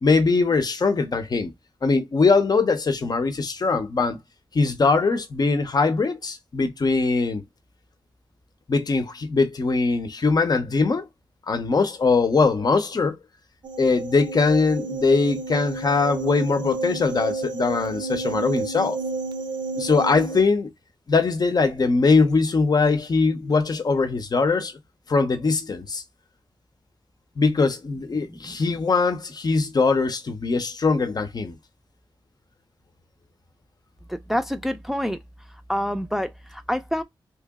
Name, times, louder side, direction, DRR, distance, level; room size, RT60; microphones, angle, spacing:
voice 1, 0.0-1.5 1.8-4.2 4.5-7.4 8.7-11.1 11.5-13.2 13.8-19.0 19.8-20.7 21.1-24.7 25.1-26.0 27.4-31.6, left 4 dB, 55° left, 0.7 m, -21 dB
sound 1, 13.6-20.4, right 3 dB, 65° right, 0.6 m, -31 dB
voice 2, 34.1-35.2 35.7-37.0, equal, 5° right, 0.5 m, -27 dB
3.1 x 2.9 x 3.5 m
cardioid pair, 65°, 8 cm